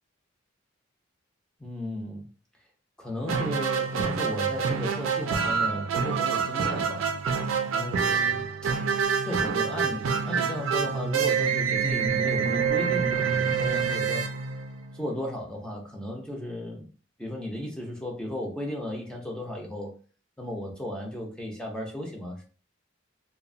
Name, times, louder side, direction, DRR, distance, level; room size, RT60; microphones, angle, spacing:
voice 1, 1.6-2.3 3.0-7.1 7.7-8.5 9.2-14.3 14.9-16.8 17.2-19.9 20.4-22.4, left 1 dB, 5° left, -1 dB, 0.4 m, -35 dB
sound 1, 3.3-15.1, right 6 dB, 90° right, 0.4 m, -27 dB
2.8 x 2.0 x 2.5 m, 0.39 s
head